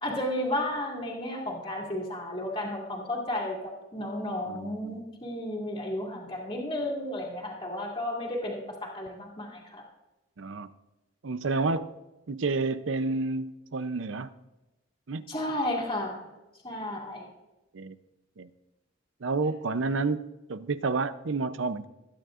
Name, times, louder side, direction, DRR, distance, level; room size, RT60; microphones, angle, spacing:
voice 1, 0.0-9.8 15.3-16.2 16.6-17.3, left 1 dB, 25° left, 2.1 m, -33 dB
voice 2, 4.5-5.0 10.4-10.7 11.2-11.9 12.3-14.3 15.1-15.3 17.7-18.0 18.4-18.5 19.2-21.8, right 3 dB, 75° right, 0.6 m, -30 dB
21.0 x 9.3 x 2.5 m
head